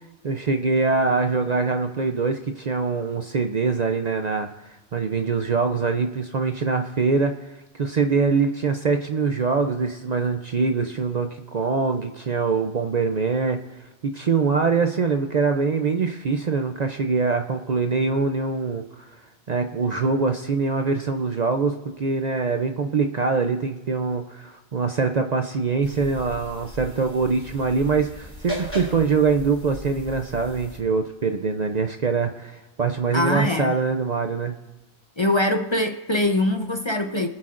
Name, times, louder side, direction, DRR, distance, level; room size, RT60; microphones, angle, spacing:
voice 1, 0.2-7.5 7.7-13.6 14.1-19.1 19.5-34.6, right 4 dB, 50° right, 6 dB, 0.6 m, -23 dB
sound 1, 25.8-30.8, equal, 10° right, 3.8 m, -37 dB
voice 2, 33.1-33.8 35.2-37.3, left 1 dB, 30° left, 5 dB, 0.7 m, -23 dB
24.5 x 8.4 x 2.5 m, 1.1 s
omnidirectional pair, 1.1 m